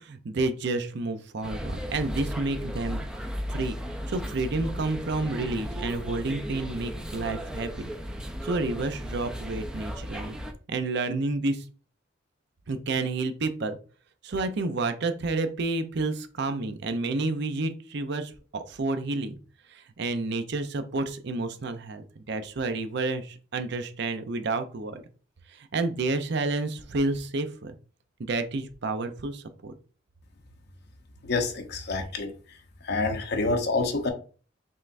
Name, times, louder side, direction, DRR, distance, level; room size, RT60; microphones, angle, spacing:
voice 1, 0.0-3.0 3.5-3.8 4.1-7.9 8.4-10.4 10.7-11.6 12.7-13.8 14.2-19.4 19.7-25.0 25.5-27.8 28.2-29.7, right 3 dB, 60° right, 0.6 m, -30 dB
sound 1, 1.4-10.5, equal, 5° right, 0.5 m, -35 dB
voice 2, 31.2-32.3 32.8-34.1, left 3 dB, 60° left, 0.7 m, -27 dB
5.5 x 3.3 x 2.5 m
head